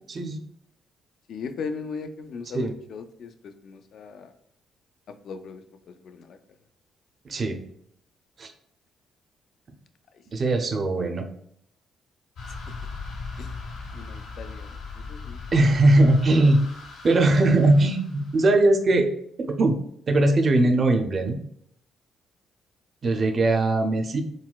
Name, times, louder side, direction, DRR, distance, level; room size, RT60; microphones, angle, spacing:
voice 1, 0.1-0.4 2.5-2.7 7.3-7.6 8.4-8.5 10.3-11.2 15.5-16.6 17.0-19.1 19.4-19.8 20.1-21.4 23.0-24.2, right 2 dB, 40° right, 5 dB, 0.4 m, -20 dB
voice 2, 1.3-4.3 5.2-6.4 10.6-10.7 12.5-12.6 13.4-13.6 13.9-15.4 23.0-23.5, left 5 dB, 65° left, 8 dB, 0.3 m, -38 dB
sound 1, 12.4-18.7, left 4 dB, 85° left, 0.7 m, -39 dB
3.9 x 2.2 x 2.3 m, 0.70 s
cardioid pair, 90°, 0 cm